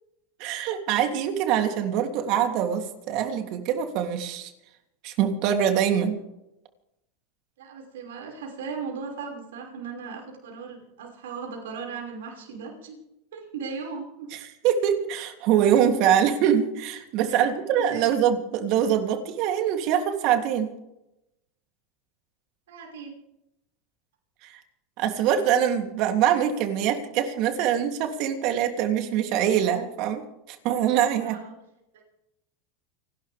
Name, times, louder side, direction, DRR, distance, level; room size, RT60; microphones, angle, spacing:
voice 1, 0.4-4.5 5.0-6.2 14.3-20.7 24.4-24.6 25.0-30.2 30.5-31.4, right 9 dB, 55° right, 4 dB, 3.1 m, -24 dB
voice 2, 7.6-13.0 13.3-14.3 17.2-18.1 22.7-23.1 31.2-31.5, right 5 dB, 85° right, 0 dB, 5.8 m, -37 dB
29.5 x 12.5 x 3.6 m, 0.86 s
supercardioid pair, 120°, 0 cm